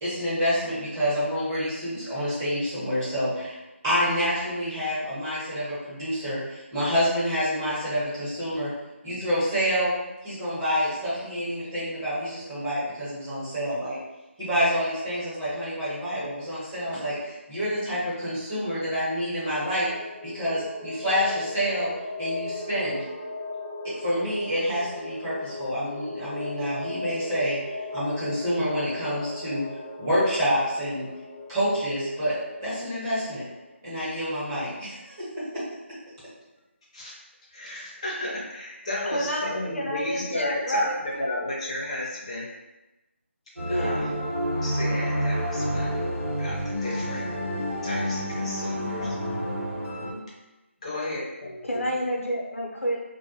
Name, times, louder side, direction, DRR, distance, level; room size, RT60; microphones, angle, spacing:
voice 1, 0.0-3.6 3.8-8.7 9.0-9.9 10.2-14.0 14.4-19.9 20.2-21.9 22.2-23.0 23.8-29.6 30.0-31.1 31.5-33.4 33.8-35.6, equal, 15° right, -13 dB, 1.0 m, -28 dB
sound 1, 19.4-33.7, left 2 dB, 55° right, 0.7 m, -38 dB
voice 2, 37.5-42.5 43.7-44.2 44.6-47.3 47.8-49.2 50.8-51.9, left 1 dB, 25° left, -6 dB, 0.6 m, -33 dB
voice 3, 39.1-41.3 43.7-44.1 51.6-53.0, equal, 85° left, -2 dB, 0.6 m, -29 dB
sound 2, 43.6-50.1, equal, 80° right, 1.0 m, -29 dB
2.1 x 2.1 x 2.7 m, 1.0 s
figure-of-eight pair, 165°, 7 cm